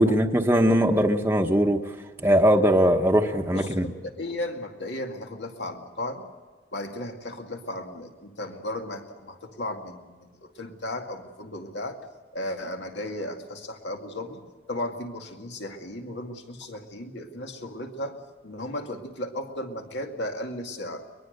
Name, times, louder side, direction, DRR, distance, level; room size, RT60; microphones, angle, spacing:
voice 1, 0.0-1.8 2.2-3.9, equal, 10° right, 2 dB, 1.1 m, -20 dB
voice 2, 3.5-6.3 6.7-12.0 12.3-14.4 14.7-18.2 18.4-21.0, left 1 dB, 65° left, 4 dB, 2.2 m, -35 dB
22.5 x 22.0 x 6.7 m, 1.4 s
head